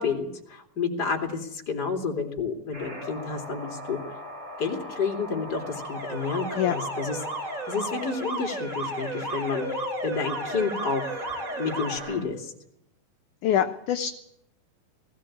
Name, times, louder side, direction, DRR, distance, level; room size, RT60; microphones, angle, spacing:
voice 1, 0.0-4.1 4.6-7.2 7.7-11.3 11.6-12.5, left 5 dB, 30° left, 3 dB, 3.0 m, -30 dB
sound 1, 2.7-12.2, left 1 dB, 55° right, 8.0 m, -39 dB
Alarm, 5.5-12.0, right 1 dB, 20° right, 4.4 m, -34 dB
voice 2, 13.4-14.1, left 10 dB, 70° left, 5 dB, 2.1 m, -24 dB
20.0 x 15.5 x 8.6 m, 0.77 s
omnidirectional pair, 4.2 m